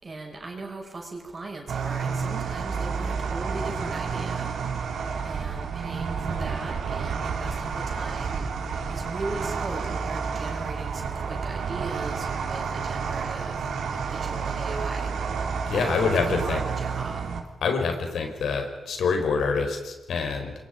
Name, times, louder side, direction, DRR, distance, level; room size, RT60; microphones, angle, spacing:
voice 1, 0.0-4.5 5.2-8.4 8.9-13.6 13.9-15.1 15.8-17.3, right 2 dB, 40° right, 1 dB, 6.0 m, -38 dB
sound 1, 1.7-17.4, right 5 dB, 85° right, 2.8 m, -30 dB
voice 2, 15.7-16.6 17.6-20.5, left 5 dB, 80° left, 4 dB, 4.7 m, -26 dB
27.5 x 22.5 x 5.2 m, 1.1 s
cardioid pair, 85°, 0 cm